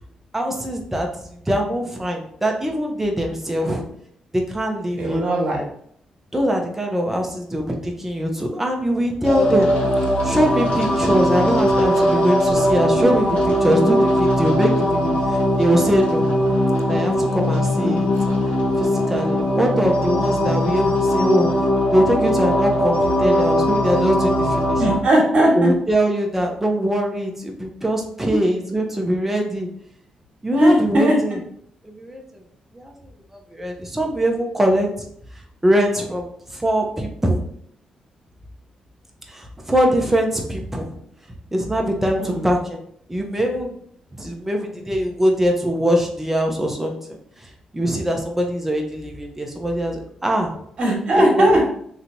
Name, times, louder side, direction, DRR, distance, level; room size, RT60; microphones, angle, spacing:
voice 1, 0.3-3.8 4.3-5.2 6.3-9.7 10.2-16.2 16.9-18.1 18.7-21.5 21.9-24.8 25.6-29.7 30.4-31.4 31.8-32.2 32.7-32.9 33.5-35.1 35.6-37.4 39.3-40.9 41.5-42.8 43.1-43.8 44.2-47.0 47.4-50.5 51.1-51.6, equal, 10° right, 1 dB, 0.7 m, -22 dB
voice 2, 5.0-5.6 17.8-17.9 24.8-25.7 30.5-31.2 42.2-42.5 50.8-51.6, right 1 dB, 50° right, -2 dB, 1.4 m, -18 dB
sound 1, 9.2-25.0, equal, 75° left, 1.0 m, -20 dB
3.1 x 2.8 x 2.7 m, 0.66 s
cardioid pair, 75°, 2 cm